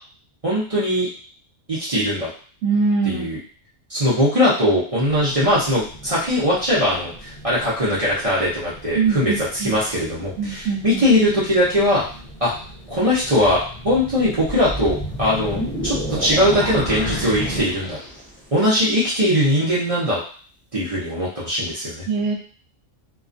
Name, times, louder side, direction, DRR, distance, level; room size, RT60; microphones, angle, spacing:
voice 1, 0.4-1.1 1.7-2.3 3.0-3.4 3.9-12.0 12.4-12.5 12.9-18.0 18.5-20.2 20.7-22.0, left 1 dB, 35° right, -8 dB, 0.6 m, -20 dB
voice 2, 2.6-3.2 8.9-9.8 10.4-11.0 22.1-22.3, right 5 dB, 85° right, 1 dB, 1.0 m, -22 dB
sound 1, 5.0-17.6, equal, 40° left, 0.5 m, -36 dB
sound 2, 14.4-18.4, equal, 10° left, 0.9 m, -30 dB
2.3 x 2.2 x 2.5 m, 0.43 s
omnidirectional pair, 1.3 m